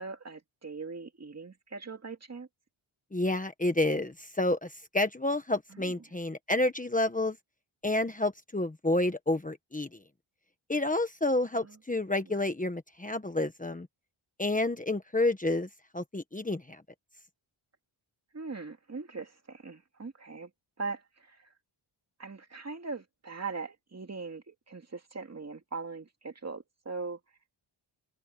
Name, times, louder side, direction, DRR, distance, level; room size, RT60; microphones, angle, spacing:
voice 1, 0.0-2.5 5.7-6.0 11.6-11.8 12.2-12.3 18.3-20.5 20.8-21.5 22.2-27.2, right 4 dB, 30° right, 2.3 m, -40 dB
voice 2, 3.1-7.4 7.8-9.9 10.7-13.9 14.4-15.7 15.9-16.8, left 2 dB, 15° left, 1.2 m, -29 dB
open air
wide cardioid pair, 135°, 49 cm